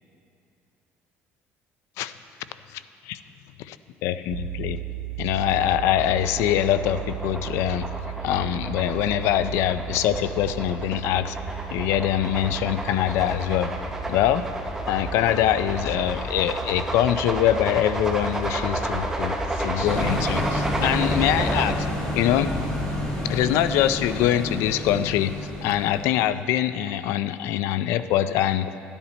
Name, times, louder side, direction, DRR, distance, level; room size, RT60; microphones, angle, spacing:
voice 1, 2.7-3.2 3.6-3.8 4.0-4.8 5.2-7.9 8.2-11.4 11.7-13.7 14.1-14.4 14.9-21.9 22.2-22.5 23.2-25.3 25.6-28.7, left 12 dB, 80° left, 13 dB, 0.4 m, -24 dB
sound 1, 4.3-22.3, right 20 dB, 90° right, 0.4 m, -38 dB
sound 2, 5.5-21.7, right 1 dB, 10° right, 0.7 m, -31 dB
sound 3, 19.8-26.3, left 1 dB, 15° left, 2.0 m, -29 dB
12.5 x 10.0 x 4.1 m, 2.7 s
cardioid pair, 165°, 5 cm